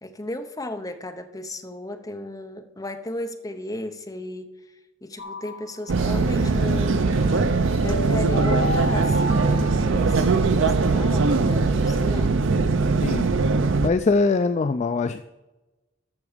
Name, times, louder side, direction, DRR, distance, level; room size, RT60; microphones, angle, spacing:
voice 1, 0.0-4.5 5.0-7.4 7.8-12.3, left 1 dB, 15° left, 6 dB, 0.8 m, -35 dB
sound 1, 5.2-6.2 7.3-10.6, equal, 55° left, 1.2 m, -32 dB
sound 2, 5.9-13.9, right 4 dB, 60° right, 0.5 m, -21 dB
sound 3, 5.9-12.3, right 2 dB, 75° right, 2.4 m, -34 dB
voice 2, 13.8-15.2, left 3 dB, 30° left, 10 dB, 0.3 m, -22 dB
13.5 x 6.0 x 5.0 m, 1.1 s
head